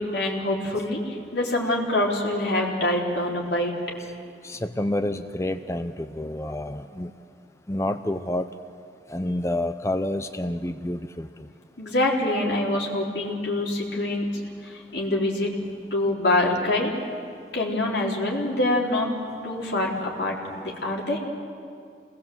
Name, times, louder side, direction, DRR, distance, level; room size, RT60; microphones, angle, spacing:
voice 1, 0.0-3.7 11.8-14.3 14.6-16.9 17.5-19.1 19.4-21.2, left 1 dB, 70° left, -3 dB, 4.4 m, -25 dB
voice 2, 4.4-7.1 7.7-8.5 9.1-11.3, left 1 dB, 15° left, 10 dB, 0.6 m, -28 dB
28.0 x 20.5 x 8.0 m, 2.4 s
head